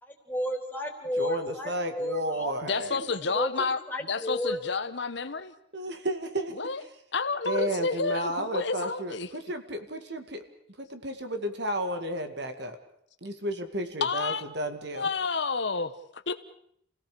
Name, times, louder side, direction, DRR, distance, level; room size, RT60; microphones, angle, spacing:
voice 1, 0.0-2.5 2.9-3.0 3.3-3.5 3.9-4.6, left 1 dB, 10° left, 1 dB, 3.4 m, -32 dB
voice 2, 1.2-3.0 5.7-6.6 7.5-10.4 10.8-12.8 13.2-15.1, right 1 dB, 55° right, 7 dB, 2.1 m, -32 dB
voice 3, 2.6-5.5 6.5-6.8 7.1-9.3 14.0-14.4 14.9-16.3, left 4 dB, 60° left, 10 dB, 1.0 m, -30 dB
28.5 x 17.5 x 6.7 m, 0.70 s
head